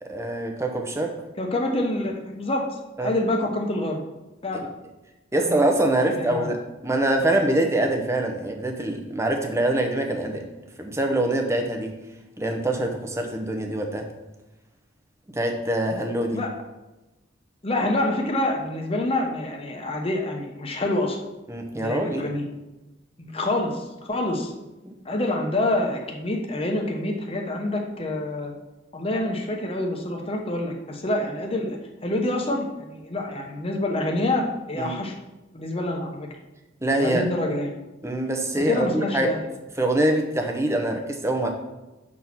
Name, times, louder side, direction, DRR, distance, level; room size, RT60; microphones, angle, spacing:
voice 1, 0.0-1.2 3.0-3.1 5.3-10.4 10.8-12.0 12.4-14.1 15.3-16.4 21.5-22.3 24.8-24.9 34.8-34.9 36.8-37.3 38.0-39.4 39.8-41.5, right 1 dB, 15° right, 3 dB, 0.8 m, -24 dB
voice 2, 1.4-2.6 3.0-4.0 4.4-4.7 5.3-5.6 6.2-6.5 16.3-16.5 17.6-21.2 21.7-22.4 23.2-24.5 25.0-28.5 28.9-35.1 35.5-36.3 37.0-37.7 38.6-39.4, left 1 dB, 30° left, 1 dB, 0.9 m, -27 dB
7.2 x 4.2 x 6.0 m, 1.1 s
head